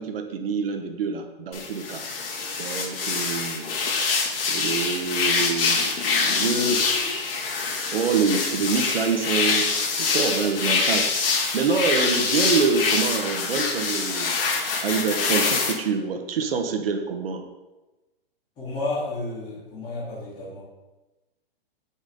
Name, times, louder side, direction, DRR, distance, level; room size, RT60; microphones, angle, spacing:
voice 1, 0.0-2.0 2.6-3.7 4.5-5.9 6.2-7.0 7.9-11.1 11.5-14.3 14.8-17.5, right 5 dB, 70° right, 5 dB, 1.4 m, -26 dB
sound 1, 1.5-15.7, left 4 dB, 65° left, 2.6 m, -25 dB
voice 2, 18.6-20.6, left 2 dB, 15° left, -11 dB, 3.4 m, -31 dB
17.5 x 6.3 x 3.8 m, 1.1 s
hypercardioid pair, 175°, 30 cm